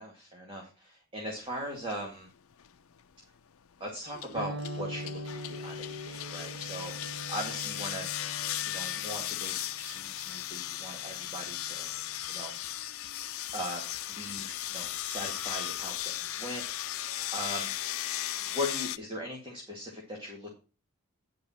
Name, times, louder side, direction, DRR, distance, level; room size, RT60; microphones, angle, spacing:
voice 1, 0.0-2.3 3.8-7.0 7.3-8.1 8.6-11.9 12.3-12.5 13.5-17.7 18.5-20.5, equal, 25° right, -1 dB, 2.1 m, -39 dB
sound 1, 1.9-2.0 2.5-2.9 4.1-19.0, left 12 dB, 80° left, 0.5 m, -36 dB
Singing, 4.1-9.3, left 4 dB, 50° right, 1.7 m, -48 dB
Electric guitar, 4.3-12.2, equal, 75° right, 2.8 m, -44 dB
10.5 x 5.2 x 5.7 m, 0.34 s
head